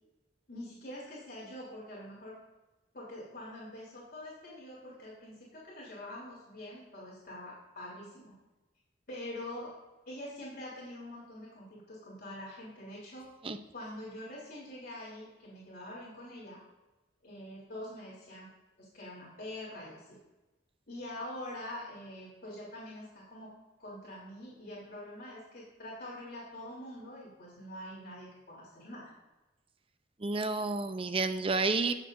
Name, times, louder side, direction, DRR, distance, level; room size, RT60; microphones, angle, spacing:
voice 1, 0.5-2.4 2.9-8.4 9.1-9.7 10.0-13.3 13.7-16.6 17.2-18.5 18.8-20.2 20.9-23.5 23.8-29.1, left 1 dB, 55° left, -6 dB, 3.4 m, -45 dB
voice 2, 30.2-31.9, right 3 dB, 30° right, 9 dB, 0.7 m, -30 dB
19.5 x 7.5 x 2.6 m, 1.1 s
head